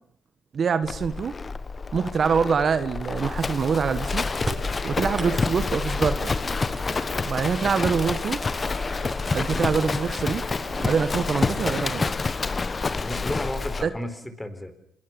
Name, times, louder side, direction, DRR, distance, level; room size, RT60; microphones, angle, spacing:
voice 1, 0.5-1.3 1.9-4.3 4.8-6.4 7.2-8.4 9.3-10.4 10.8-12.1 13.8-13.9, right 6 dB, 50° right, 1.4 m, -25 dB
Livestock farm animals working animals, 0.8-13.9, left 4 dB, 30° left, 1.2 m, -28 dB
Crowd, 3.7-11.9, right 6 dB, 65° right, 6.7 m, -45 dB
sound 1, 4.4-5.8 6.4-7.6 8.6-8.7 9.7-9.8 10.2-10.7, right 2 dB, 20° right, 6.4 m, -37 dB
voice 2, 4.9-5.5 12.9-14.7, left 1 dB, 10° left, 4.3 m, -34 dB
27.5 x 22.0 x 7.2 m
cardioid pair, 90°, 0 cm